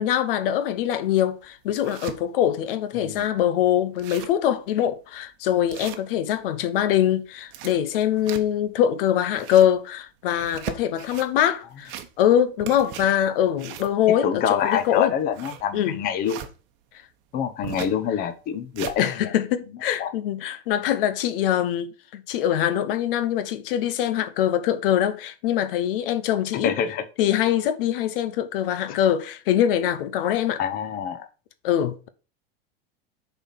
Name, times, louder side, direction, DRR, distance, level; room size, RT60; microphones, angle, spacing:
voice 1, 0.0-15.1 15.7-16.0 19.0-26.7 27.2-30.6 31.6-32.1, left 10 dB, 70° left, 0.9 m, -23 dB
sound 1, 0.8-0.9 1.4-2.2 2.7-2.8 3.1-3.2 3.6-3.7 3.9-4.5 4.9-5.0 5.7-6.5 7.3-8.7 9.2-9.8 10.3-11.3 11.7-12.3 12.6-16.5 17.6-18.0 18.4-19.0, right 11 dB, 40° right, 1.0 m, -38 dB
voice 2, 2.9-3.2 14.1-16.4 17.3-19.3 20.0-20.1 26.5-27.0 30.6-31.3, left 8 dB, 30° left, 0.9 m, -26 dB
6.8 x 4.2 x 5.6 m
supercardioid pair, 150°, 29 cm